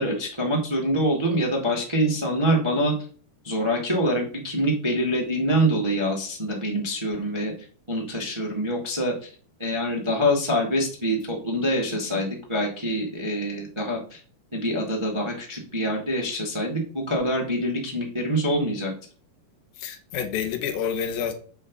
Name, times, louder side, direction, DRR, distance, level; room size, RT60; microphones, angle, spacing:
voice 1, 0.0-2.9 3.4-7.5 7.9-9.3 9.6-14.2 14.5-18.9, equal, 45° right, -2 dB, 0.3 m, -25 dB
voice 2, 19.8-21.3, left 7 dB, 75° left, 6 dB, 2.6 m, -28 dB
7.9 x 5.2 x 5.3 m, 0.43 s
omnidirectional pair, 4.6 m